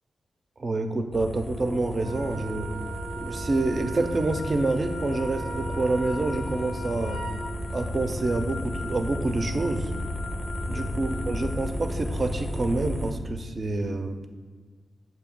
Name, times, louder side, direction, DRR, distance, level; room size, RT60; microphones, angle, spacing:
voice 1, 0.6-2.7 3.2-7.2 7.7-9.9 10.7-14.2, right 2 dB, 30° right, 7 dB, 0.4 m, -27 dB
sound 1, 1.1-13.1, equal, 20° left, 0.5 m, -33 dB
Wind instrument woodwind instrument, 1.9-7.5, right 4 dB, 80° right, 0.5 m, -39 dB
sound 2, 4.0-11.7, left 5 dB, 80° left, 0.4 m, -43 dB
7.0 x 2.7 x 5.2 m, 1.5 s
wide cardioid pair, 175°, 0 cm